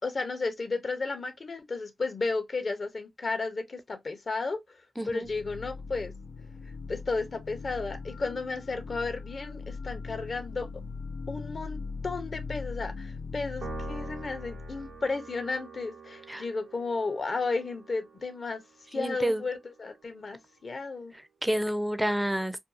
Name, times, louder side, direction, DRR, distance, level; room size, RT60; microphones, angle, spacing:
voice 1, 0.0-4.8 5.1-6.1 6.9-10.7 11.3-18.6 18.9-21.1, left 3 dB, 50° left, 0.7 m, -33 dB
voice 2, 5.0-5.3 16.3-16.4 18.9-19.5 21.4-22.6, equal, 5° right, 0.5 m, -29 dB
sound 1, 5.2-15.1, left 4 dB, 85° left, 0.3 m, -40 dB
Piano, 13.6-20.2, right 5 dB, 85° right, 0.6 m, -46 dB
2.6 x 2.3 x 2.5 m
cardioid pair, 65°, 0 cm